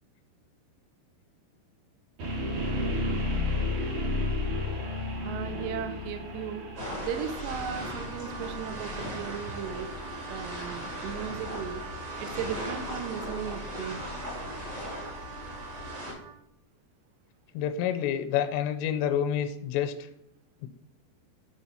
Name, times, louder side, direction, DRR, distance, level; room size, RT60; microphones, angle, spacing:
sound 1, 2.2-14.2, left 2 dB, 50° right, 3.6 m, -34 dB
voice 1, 5.2-6.6 7.0-9.9 10.3-11.8 12.2-14.0, right 8 dB, 90° right, 9 dB, 2.9 m, -36 dB
sound 2, 6.8-16.1, equal, 30° right, 2.0 m, -38 dB
Wind instrument woodwind instrument, 7.2-16.4, right 8 dB, 70° right, 2.3 m, -46 dB
voice 2, 17.5-19.9 20.6-20.7, left 9 dB, 85° left, 8 dB, 2.7 m, -28 dB
7.0 x 4.6 x 5.6 m, 0.77 s
omnidirectional pair, 4.8 m